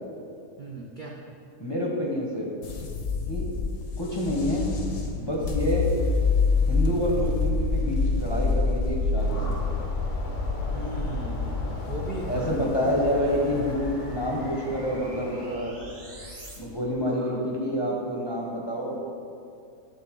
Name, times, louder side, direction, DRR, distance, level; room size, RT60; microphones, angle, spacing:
voice 1, 0.6-1.2 10.7-12.7 17.1-17.5, right 3 dB, 60° right, -1 dB, 0.5 m, -38 dB
voice 2, 1.6-2.5 3.3-3.5 4.0-4.8 5.1-5.9 6.7-9.6 12.3-15.7 16.6-19.0, equal, 20° left, -3 dB, 0.8 m, -28 dB
sound 1, 2.6-16.8, left 4 dB, 65° left, 1.2 m, -28 dB
sound 2, 9.2-15.6, left 1 dB, 85° left, 1.6 m, -40 dB
sound 3, 10.3-16.6, right 1 dB, 35° right, 1.0 m, -47 dB
11.0 x 3.8 x 3.7 m, 2.5 s
omnidirectional pair, 1.6 m